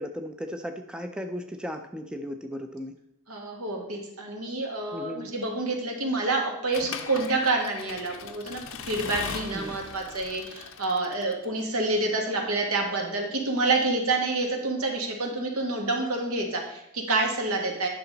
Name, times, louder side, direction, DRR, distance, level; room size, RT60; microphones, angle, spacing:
voice 1, 0.0-2.9 4.9-5.3 9.5-9.8, equal, 5° right, 6 dB, 0.4 m, -36 dB
voice 2, 3.3-17.9, right 2 dB, 80° right, 1 dB, 1.9 m, -28 dB
Accelerating revving vroom / Mechanisms, 6.7-11.6, left 6 dB, 65° left, 0.6 m, -39 dB
10.5 x 5.9 x 4.0 m, 0.80 s
head